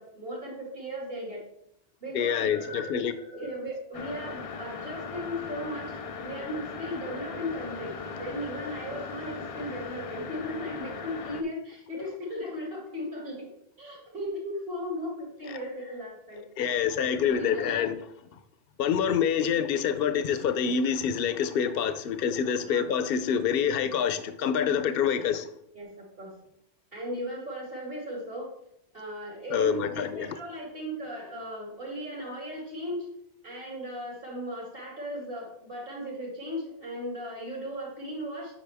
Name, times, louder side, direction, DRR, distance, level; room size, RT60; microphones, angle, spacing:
voice 1, 0.0-1.5 2.0-16.4 16.9-17.9 22.6-22.9 24.7-24.8 25.7-26.3 26.9-28.5 28.9-33.1 33.4-38.5, equal, 60° right, -2 dB, 2.7 m, -37 dB
voice 2, 2.1-3.1 11.9-12.1 15.5-15.6 16.6-18.0 18.8-25.5 29.5-30.3, left 7 dB, 65° left, 10 dB, 0.8 m, -26 dB
sound 1, 3.9-11.4, left 4 dB, 45° left, 0.5 m, -38 dB
8.7 x 5.4 x 3.4 m, 0.77 s
omnidirectional pair, 1.1 m